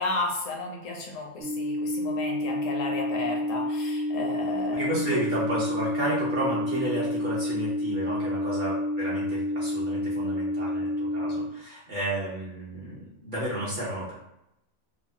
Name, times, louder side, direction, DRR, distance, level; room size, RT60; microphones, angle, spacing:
voice 1, 0.0-4.8, left 3 dB, 75° left, 0 dB, 0.9 m, -33 dB
sound 1, 1.4-11.4, left 1 dB, 80° right, 1.1 m, -29 dB
voice 2, 4.7-14.1, right 1 dB, 45° right, -8 dB, 0.7 m, -32 dB
3.0 x 2.0 x 2.6 m, 0.82 s
omnidirectional pair, 1.5 m